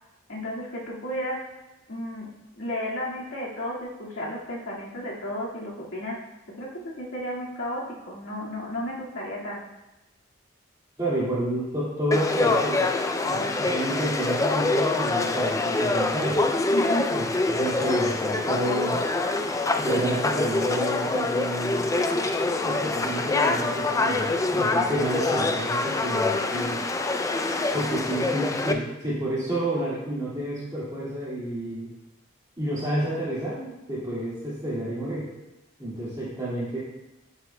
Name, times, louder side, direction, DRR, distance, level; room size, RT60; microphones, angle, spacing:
voice 1, 0.3-1.5 1.9-6.2 6.5-9.6 16.7-17.2 26.4-26.8, equal, 70° left, -5 dB, 2.0 m, -33 dB
voice 2, 11.0-12.9 13.2-16.4 17.1-17.3 17.5-19.0 19.8-21.9 22.6-26.8 27.7-31.9 32.6-35.3 35.8-36.8, right 1 dB, 20° right, -9 dB, 2.0 m, -30 dB
Conversation / Crowd, 12.1-28.7, left 3 dB, 15° left, 0.3 m, -25 dB
11.0 x 7.0 x 2.2 m, 0.99 s
head